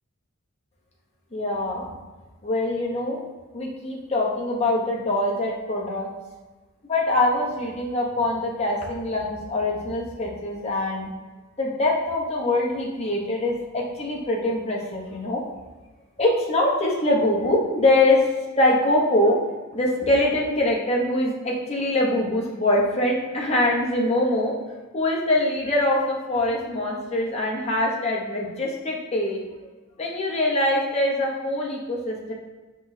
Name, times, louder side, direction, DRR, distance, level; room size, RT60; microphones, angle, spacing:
voice 1, 1.3-1.9 2.4-3.2 3.5-6.1 6.9-11.1 11.6-15.4 16.2-18.2 18.6-19.4 19.7-24.5 24.9-29.4 30.0-32.3, left 1 dB, 30° left, -3 dB, 0.9 m, -23 dB
6.0 x 3.0 x 2.7 m, 1.2 s
head